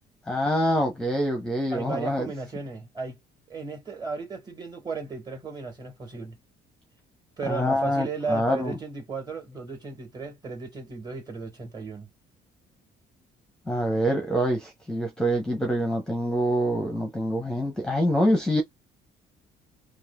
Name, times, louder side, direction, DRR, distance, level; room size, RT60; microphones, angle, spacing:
voice 1, 0.3-2.3 7.5-8.8 13.7-18.6, equal, 5° left, 0.8 m, -25 dB
voice 2, 1.7-3.2 3.5-6.4 7.4-12.1, right 4 dB, 25° right, 1.9 m, -35 dB
3.1 x 2.4 x 2.3 m
cardioid pair, 110°, 17 cm